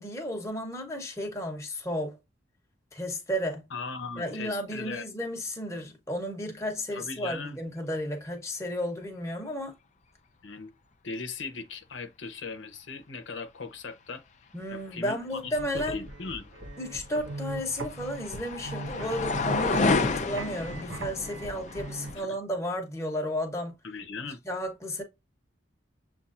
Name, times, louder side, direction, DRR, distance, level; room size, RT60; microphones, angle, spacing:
voice 1, 0.0-2.2 2.9-3.6 4.2-9.7 14.5-16.0 16.8-23.7 24.4-25.0, equal, 15° left, 1.0 m, -33 dB
voice 2, 3.7-5.1 6.9-7.6 10.4-10.7 11.0-14.2 14.7-16.5 22.2-22.3 23.8-24.4, left 4 dB, 85° left, 0.8 m, -39 dB
sound 1, 15.4-22.1, right 2 dB, 90° right, 0.9 m, -40 dB
sound 2, 16.9-22.2, left 3 dB, 40° left, 0.5 m, -30 dB
7.1 x 2.5 x 2.5 m
head